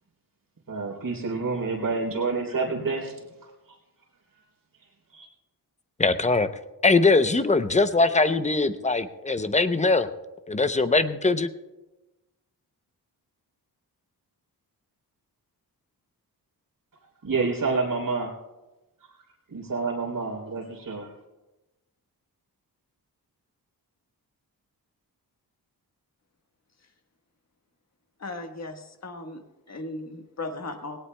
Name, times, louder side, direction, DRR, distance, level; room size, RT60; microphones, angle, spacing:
voice 1, 0.7-3.1 5.1-5.3 17.2-18.3 19.5-21.1, right 4 dB, 55° right, 0 dB, 3.4 m, -28 dB
voice 2, 6.0-6.5 6.8-10.1 10.5-11.5, left 3 dB, 20° left, 11 dB, 0.6 m, -21 dB
voice 3, 28.2-31.0, left 2 dB, 45° left, 5 dB, 1.4 m, -37 dB
19.5 x 18.0 x 2.2 m, 1.1 s
wide cardioid pair, 135°, 38 cm